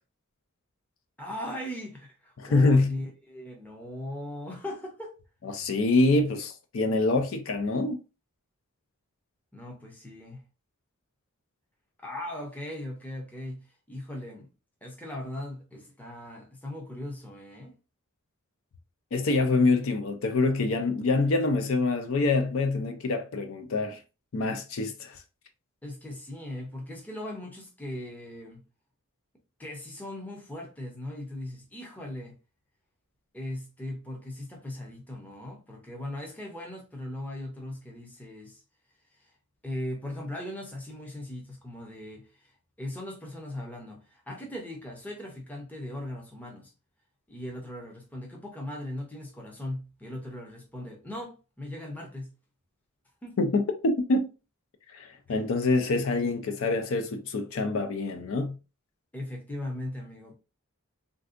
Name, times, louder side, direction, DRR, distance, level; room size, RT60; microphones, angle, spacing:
voice 1, 1.2-5.1 9.5-10.4 12.0-14.5 14.8-17.7 25.8-28.6 29.6-32.3 33.3-38.6 39.6-42.5 42.8-46.7 47.3-52.3 53.2-53.4 55.3-55.4 59.1-60.4, left 1 dB, 5° left, 0.6 m, -39 dB
voice 2, 2.4-2.9 5.4-8.0 19.1-24.0 24.3-25.2 53.4-54.3 54.9-58.6, left 3 dB, 60° left, 0.4 m, -25 dB
3.3 x 2.6 x 2.4 m
head